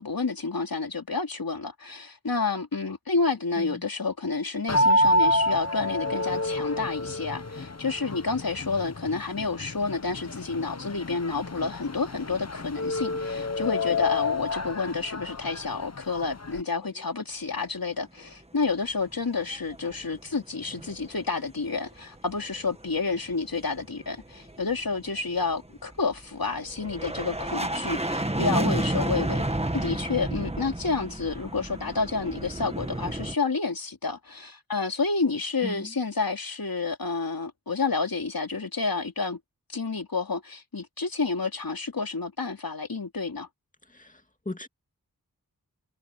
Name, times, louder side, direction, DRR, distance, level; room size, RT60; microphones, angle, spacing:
voice 1, 0.0-29.4 29.7-39.4 39.7-43.5, left 4 dB, 70° left, 3.0 m, -29 dB
sound 1, 4.7-16.6, left 1 dB, 45° left, 1.2 m, -28 dB
sound 2, 19.2-20.2 20.4-21.3 21.6-33.4, right 1 dB, 15° right, 1.7 m, -31 dB
voice 2, 43.9-44.7, left 2 dB, 20° left, 2.4 m, -38 dB
wide cardioid pair, 65°, 36 cm